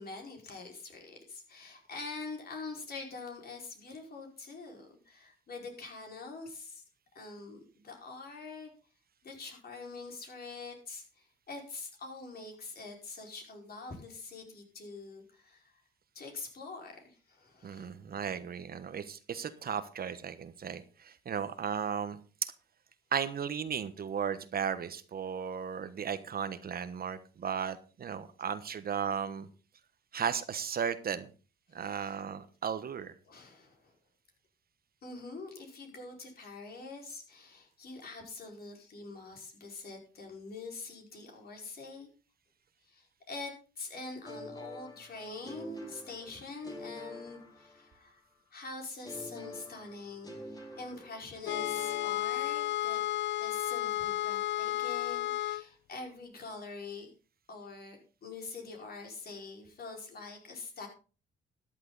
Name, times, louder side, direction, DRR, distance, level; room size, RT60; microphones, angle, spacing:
voice 1, 0.0-6.8 7.2-8.7 9.2-15.7 16.2-18.0 31.8-32.2 33.3-33.9 35.0-42.1 42.9-48.2 48.5-53.0 53.4-57.1 57.5-60.9, left 3 dB, 50° left, 2 dB, 5.0 m, -45 dB
voice 2, 17.6-22.5 23.1-29.5 30.1-31.3 31.7-33.1, right 7 dB, 50° right, 12 dB, 1.2 m, -35 dB
sound 1, 44.2-48.2 49.0-52.9, left 1 dB, 20° left, 4.2 m, -47 dB
sound 2, 51.4-55.6, left 14 dB, 70° left, 0.6 m, -32 dB
13.5 x 10.5 x 4.0 m, 0.35 s
cardioid pair, 90°, 20 cm